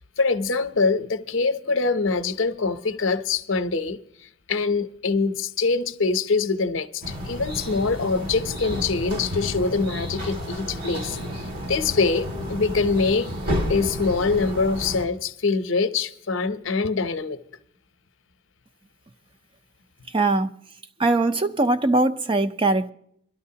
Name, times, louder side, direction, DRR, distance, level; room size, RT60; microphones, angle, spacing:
voice 1, 0.2-4.0 4.5-13.3 13.7-17.4, left 4 dB, 65° left, 0.7 m, -24 dB
sound 1, 7.0-15.1, equal, 45° right, 2.1 m, -31 dB
voice 2, 20.1-20.5 21.0-22.9, right 2 dB, 25° right, 0.5 m, -21 dB
23.5 x 12.5 x 2.8 m
head